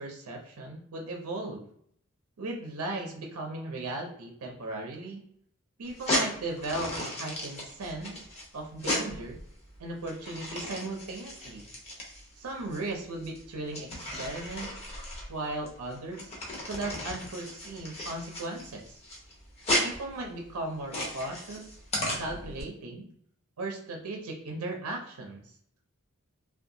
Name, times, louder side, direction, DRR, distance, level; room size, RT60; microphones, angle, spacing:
voice 1, 0.0-1.7 2.4-5.2 5.8-8.2 8.5-9.4 9.8-11.7 12.4-14.7 15.3-16.3 16.7-18.9 19.8-21.7 22.2-23.1 23.6-25.5, right 2 dB, 70° right, 1 dB, 0.5 m, -37 dB
sound 1, 5.9-22.6, left 1 dB, 30° left, 0.7 m, -35 dB
2.7 x 2.2 x 2.6 m, 0.68 s
head